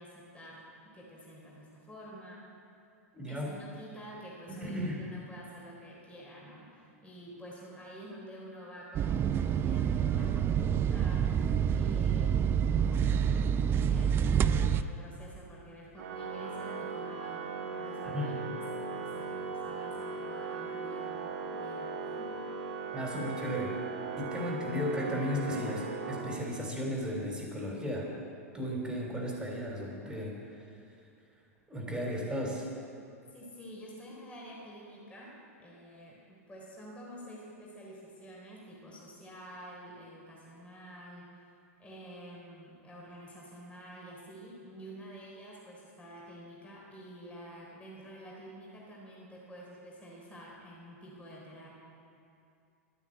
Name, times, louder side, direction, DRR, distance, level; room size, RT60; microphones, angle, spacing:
voice 1, 0.0-2.5 3.3-22.3 33.3-35.3 35.6-41.5 41.8-51.7, equal, 15° left, -3 dB, 3.8 m, -49 dB
voice 2, 3.1-3.5 4.6-5.0 18.1-18.4 22.9-23.8 24.2-28.1 28.5-30.6 31.7-32.7, equal, 10° right, -1 dB, 3.6 m, -35 dB
sound 1, 8.9-14.8, right 8 dB, 30° right, 0.5 m, -27 dB
Organ, 16.0-26.9, right 4 dB, 75° right, 1.2 m, -38 dB
12.0 x 9.8 x 8.5 m, 2.5 s
hypercardioid pair, 100°, 8 cm